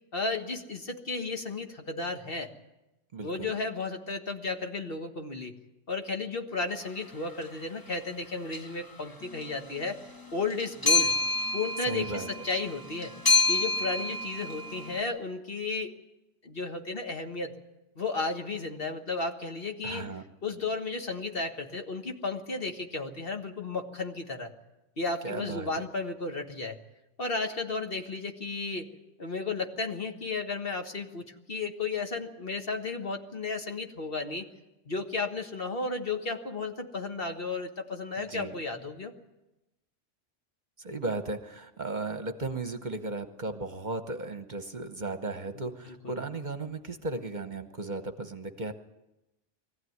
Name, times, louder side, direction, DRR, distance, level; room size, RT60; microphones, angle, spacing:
voice 1, 0.1-2.5 3.2-5.5 5.9-10.0 10.3-11.1 11.5-13.1 13.5-15.9 16.4-17.5 18.0-20.1 20.4-24.5 25.0-26.8 27.2-28.9 29.2-34.5 34.9-39.1 45.6-46.2, left 3 dB, 50° left, 4 dB, 1.8 m, -34 dB
voice 2, 3.1-3.5 11.9-12.5 19.8-20.2 25.2-25.8 38.2-38.6 40.8-48.7, right 2 dB, 40° right, 8 dB, 1.1 m, -36 dB
sound 1, 7.2-7.4 8.5-8.9 9.2-15.0, left 3 dB, 20° left, 0.9 m, -29 dB
22.0 x 15.0 x 9.5 m, 0.97 s
omnidirectional pair, 1.2 m